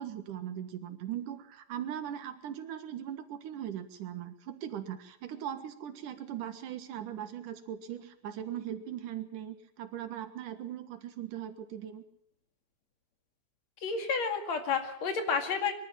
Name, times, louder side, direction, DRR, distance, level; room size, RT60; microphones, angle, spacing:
voice 1, 0.0-12.0, right 10 dB, 90° right, 9 dB, 3.1 m, -39 dB
voice 2, 13.8-15.7, left 5 dB, 60° left, 6 dB, 3.4 m, -30 dB
23.5 x 12.5 x 9.0 m, 0.70 s
omnidirectional pair, 3.6 m